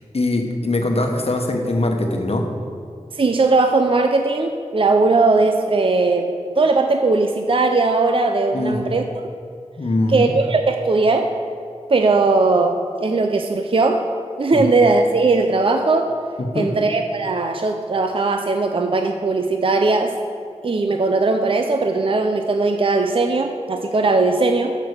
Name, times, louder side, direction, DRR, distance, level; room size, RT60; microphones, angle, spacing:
voice 1, 0.1-2.5 8.5-9.0 9.8-10.3 14.5-14.7 16.4-16.7, left 2 dB, 55° left, 3 dB, 1.1 m, -22 dB
voice 2, 3.1-9.3 10.1-11.3 11.9-14.0 14.4-16.1 16.5-20.1 20.6-24.7, right 3 dB, 45° right, 5 dB, 0.5 m, -18 dB
8.2 x 6.0 x 6.6 m, 2.3 s
wide cardioid pair, 80°, 12 cm